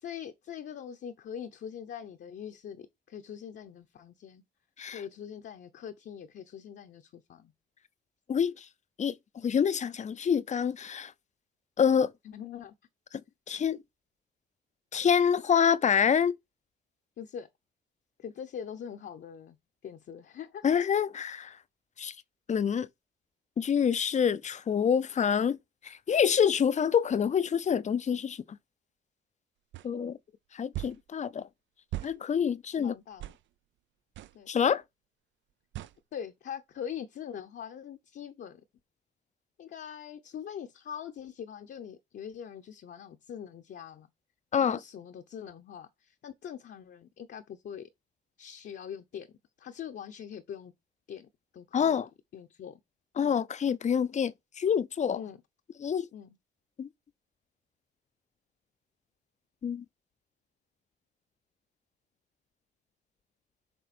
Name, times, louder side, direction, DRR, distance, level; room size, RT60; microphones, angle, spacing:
voice 1, 0.0-4.4 4.9-7.5 12.2-12.7 17.2-17.5 18.2-19.6 19.8-20.7 32.8-33.3 34.3-34.5 36.1-38.6 39.6-44.1 44.6-47.9 48.4-49.3 49.6-50.7 51.1-52.0 52.3-52.8 53.2-53.4 55.1-55.4 56.1-56.4, left 8 dB, 60° left, 0.8 m, -43 dB
voice 2, 8.3-8.6 9.0-11.1 11.8-12.1 13.5-13.8 14.9-16.3 20.6-21.5 22.0-22.1 22.5-22.9 23.6-25.6 25.8-28.4 29.8-30.2 30.5-31.4 32.0-32.9 34.5-34.8 44.5-44.8 51.7-52.1 53.2-55.2 55.8-56.1 56.8-56.9 59.6-59.8, left 7 dB, 35° left, 0.5 m, -26 dB
sound 1, 29.7-29.9 30.7-31.0 31.9-32.2 33.2-33.4 34.2-34.4 35.7-36.0, right 15 dB, 70° right, 0.5 m, -38 dB
6.9 x 3.6 x 4.2 m
cardioid pair, 90°, 20 cm